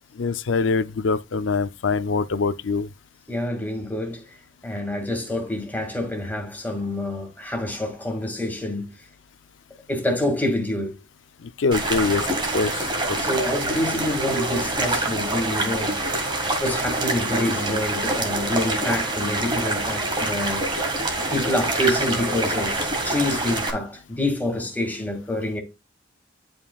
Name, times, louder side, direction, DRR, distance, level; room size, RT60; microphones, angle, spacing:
voice 1, 0.2-2.9 11.4-12.3 12.5-13.3, left 4 dB, 80° left, 0.5 m, -24 dB
voice 2, 3.3-4.3 4.6-8.9 9.9-11.0 13.2-16.0 16.6-20.6 21.3-25.6, left 1 dB, 10° left, 2.2 m, -27 dB
sound 1, 11.7-23.7, right 2 dB, 25° right, 1.8 m, -26 dB
11.0 x 5.4 x 2.4 m
head